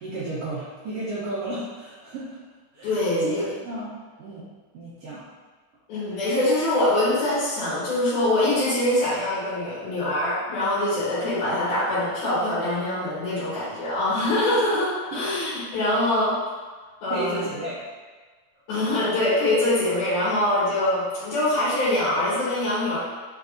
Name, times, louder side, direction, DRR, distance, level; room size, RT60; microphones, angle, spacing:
voice 1, 0.0-2.4 2.7-2.9 3.2-4.5 4.7-5.2 17.1-17.8 18.9-19.0, right 2 dB, 65° right, -9 dB, 1.7 m, -33 dB
voice 2, 2.8-3.4 5.9-16.3 17.0-17.4 18.7-23.0, left 1 dB, 80° left, -12 dB, 2.9 m, -24 dB
5.7 x 3.3 x 2.6 m, 1.4 s
omnidirectional pair, 3.5 m